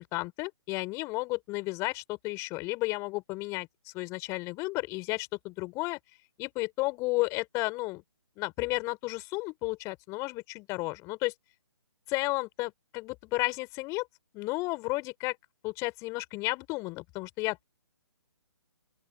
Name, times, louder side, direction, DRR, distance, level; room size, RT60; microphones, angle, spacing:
voice 1, 0.0-3.7 3.9-6.0 6.4-8.0 8.4-11.3 12.1-14.1 14.3-15.4 15.6-17.6, left 23 dB, 20° left, 4.7 m, -33 dB
open air
figure-of-eight pair, 135°, 14 cm